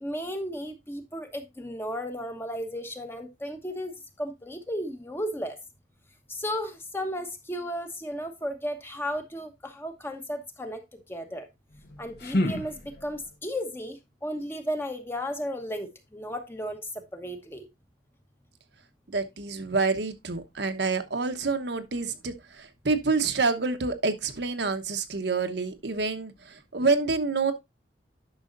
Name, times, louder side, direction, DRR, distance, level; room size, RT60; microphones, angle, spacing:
voice 1, 0.0-3.9 4.2-5.6 6.3-10.8 11.1-11.5 12.0-16.8 17.1-17.7, equal, 10° left, 1.1 m, -34 dB
sound 1, 11.7-13.4, left 1 dB, 55° left, 1.3 m, -31 dB
voice 2, 19.1-27.5, right 4 dB, 65° right, 1.0 m, -27 dB
10.5 x 6.2 x 2.6 m
head